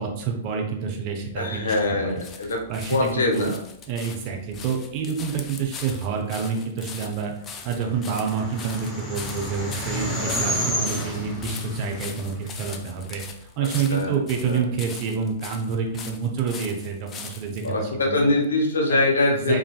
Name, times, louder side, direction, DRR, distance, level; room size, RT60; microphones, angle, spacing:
voice 1, 0.0-2.2 2.7-3.5 3.9-7.3 7.6-18.2 18.9-19.6, right 6 dB, 45° right, 2 dB, 0.6 m, -28 dB
sound 1, 1.2-17.7 18.4-18.5, left 5 dB, 25° left, 0.3 m, -41 dB
voice 2, 1.4-2.6 2.9-3.6 13.9-14.2 14.5-14.6 17.6-19.6, left 2 dB, 80° left, 1 dB, 0.7 m, -23 dB
sound 2, 7.7-13.1, equal, 10° left, 0.7 m, -30 dB
3.1 x 2.5 x 2.3 m, 0.76 s
hypercardioid pair, 115°, 0 cm